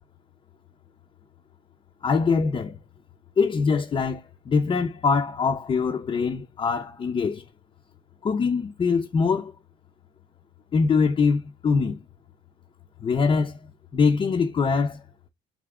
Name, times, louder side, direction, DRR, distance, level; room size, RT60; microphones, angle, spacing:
voice 1, 2.0-2.8 3.4-7.4 8.2-9.5 10.7-12.0 13.0-13.6 13.9-15.0, left 5 dB, 30° left, 0.5 m, -23 dB
3.6 x 2.8 x 3.4 m
cardioid pair, 110°, 17 cm